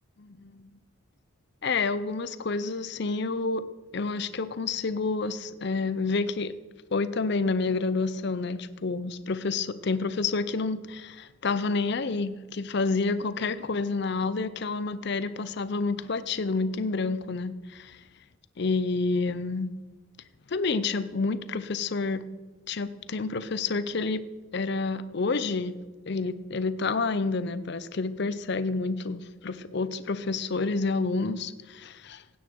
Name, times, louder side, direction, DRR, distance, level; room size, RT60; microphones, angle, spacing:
voice 1, 0.2-0.7 1.6-3.6 3.9-6.5 6.9-18.0 18.6-19.7 20.5-22.2 22.7-24.2 24.5-25.8 26.1-32.4, left 3 dB, 55° left, 14 dB, 0.6 m, -29 dB
16.5 x 9.1 x 4.6 m, 1.2 s
head